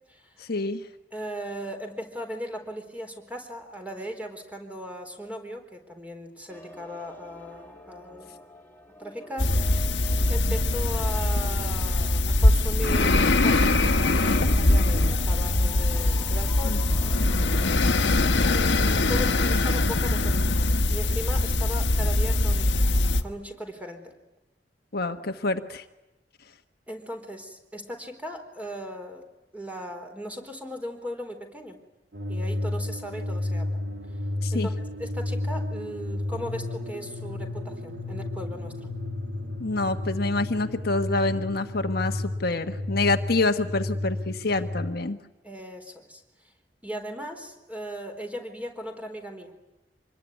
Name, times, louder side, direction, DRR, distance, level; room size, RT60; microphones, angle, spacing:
voice 1, 0.4-0.8 16.6-16.8 24.9-25.8 34.4-34.7 39.6-45.2, left 2 dB, 60° left, 6 dB, 1.4 m, -27 dB
voice 2, 1.1-8.3 9.0-9.6 10.3-16.8 18.4-24.1 26.9-29.2 29.5-31.8 32.3-33.8 34.5-38.9 45.4-46.2 46.8-49.5, equal, 10° right, 4 dB, 4.1 m, -38 dB
sound 1, 6.5-18.7, equal, 10° left, 3.2 m, -45 dB
sound 2, 9.4-23.2, left 2 dB, 85° left, 1.6 m, -22 dB
sound 3, 32.1-44.9, left 2 dB, 70° right, 3.1 m, -32 dB
26.5 x 21.5 x 9.6 m, 0.98 s
head